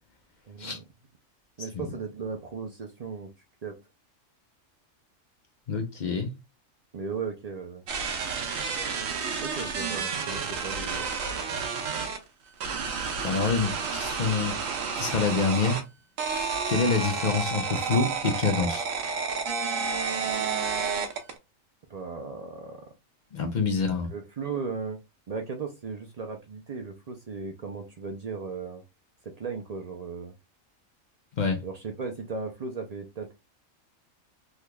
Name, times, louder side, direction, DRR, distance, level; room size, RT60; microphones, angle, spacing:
voice 1, 0.5-0.8 1.6-3.3 3.6-3.8 6.9-7.8 9.4-11.6 21.9-22.9 24.0-25.0 25.3-28.8 29.2-30.3 31.6-33.3, right 5 dB, 65° right, 0.4 m, -36 dB
voice 2, 5.7-6.3 13.2-14.6 15.0-15.8 16.7-18.9 23.3-24.1 31.4-31.6, left 4 dB, 45° left, 0.6 m, -26 dB
sound 1, 7.9-12.2 12.6-15.8 16.2-21.4, right 5 dB, 80° right, 1.1 m, -30 dB
3.6 x 3.1 x 2.2 m
omnidirectional pair, 1.4 m